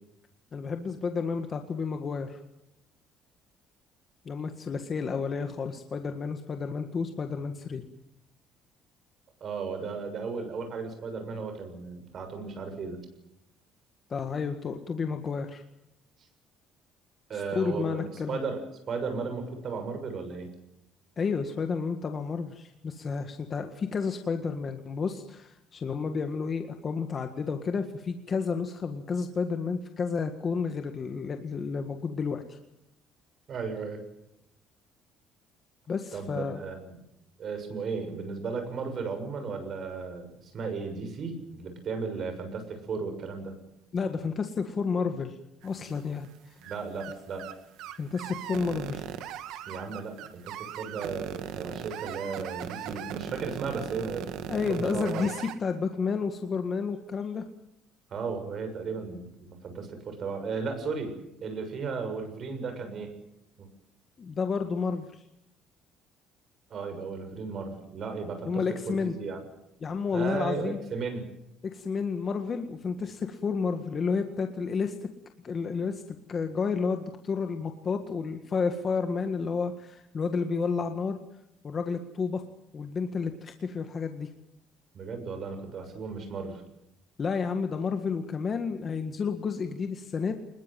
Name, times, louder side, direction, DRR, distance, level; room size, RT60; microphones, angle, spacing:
voice 1, 0.5-2.4 4.3-7.8 14.1-15.6 17.3-18.4 21.2-32.6 35.9-36.6 43.9-45.4 45.6-46.3 48.0-49.1 54.5-57.4 64.2-65.2 68.4-69.1 69.8-70.9 71.6-75.1 75.4-76.0 76.3-81.2 81.6-82.4 82.7-84.3 87.2-90.4, left 5 dB, 30° left, 6 dB, 1.7 m, -31 dB
voice 2, 9.4-13.1 17.3-20.5 33.5-34.0 36.1-37.0 37.4-43.6 46.6-47.5 49.7-55.3 58.1-61.1 61.4-63.1 63.6-63.7 66.7-69.5 70.1-71.3 84.9-86.6, right 4 dB, 40° right, 7 dB, 6.9 m, -35 dB
sound 1, 45.6-46.3 46.6-46.7 47.0-47.1 47.4-47.5 47.8-55.6, right 11 dB, 75° right, 2.2 m, -38 dB
25.5 x 21.5 x 7.6 m, 0.83 s
cardioid pair, 155°, 0 cm